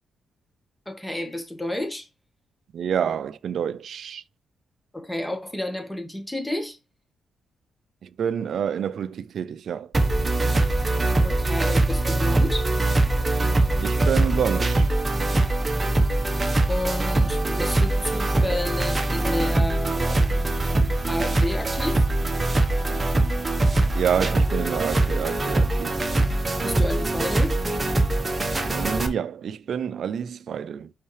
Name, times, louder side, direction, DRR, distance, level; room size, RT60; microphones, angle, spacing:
voice 1, 0.8-2.1 4.9-6.8 11.2-12.7 16.7-20.5 21.1-22.0 26.6-27.6, left 1 dB, 10° left, 1.5 m, -31 dB
voice 2, 2.7-4.2 8.0-9.9 13.8-14.9 22.9-23.0 23.9-26.0 28.6-30.9, right 8 dB, 70° right, 0.4 m, -28 dB
sound 1, 9.9-29.1, right 2 dB, 25° right, 1.1 m, -22 dB
5.7 x 5.5 x 3.3 m
cardioid pair, 80°, 0 cm